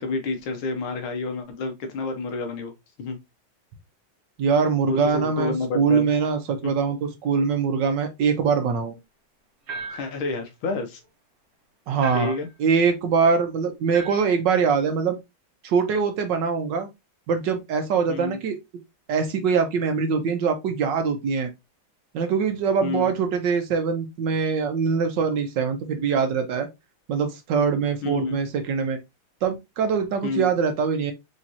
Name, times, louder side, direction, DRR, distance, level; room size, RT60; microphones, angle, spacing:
voice 1, 0.0-2.7 3.0-3.2 4.9-6.1 6.6-6.7 9.9-11.0 12.1-12.5 18.1-18.4 22.8-23.1 28.0-28.4 30.2-30.5, left 3 dB, 80° left, 1.8 m, -29 dB
voice 2, 4.4-9.0 11.9-12.3 12.6-15.2 15.6-16.9 17.3-18.6 19.1-21.5 22.1-26.7 27.1-29.0 29.4-31.1, right 5 dB, 70° right, 1.3 m, -23 dB
sound 1, 9.7-10.2 12.0-12.5 13.9-14.3, right 3 dB, 50° right, 0.8 m, -36 dB
5.0 x 3.1 x 2.7 m
omnidirectional pair, 2.3 m